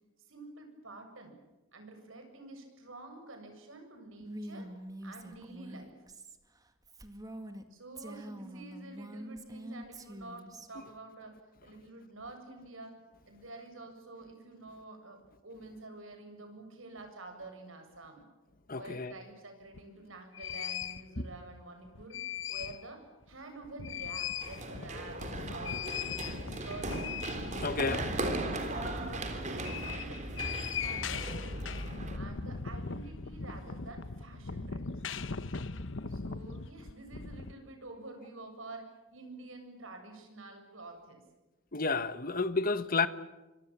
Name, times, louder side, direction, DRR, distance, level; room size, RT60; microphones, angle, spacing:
voice 1, 0.3-1.3 1.7-4.7 5.0-6.0 7.7-13.0 13.3-18.2 18.8-22.2 22.5-25.8 26.2-27.1 27.9-31.4 32.1-34.9 36.1-41.2, right 2 dB, 75° right, 7.6 m, -48 dB
Female speech woman speaking, 4.2-7.6 8.0-10.7, right 1 dB, 20° right, 1.9 m, -45 dB
voice 2, 18.7-19.1 27.6-28.0 41.7-43.1, left 4 dB, 45° left, 1.4 m, -30 dB
sound 1, 19.7-19.8 20.3-21.0 21.8-22.9 23.2-23.3 23.6-37.5, left 6 dB, 65° left, 1.0 m, -40 dB
Run, 24.4-32.2, right 2 dB, 35° right, 3.6 m, -37 dB
25.5 x 25.0 x 7.5 m
head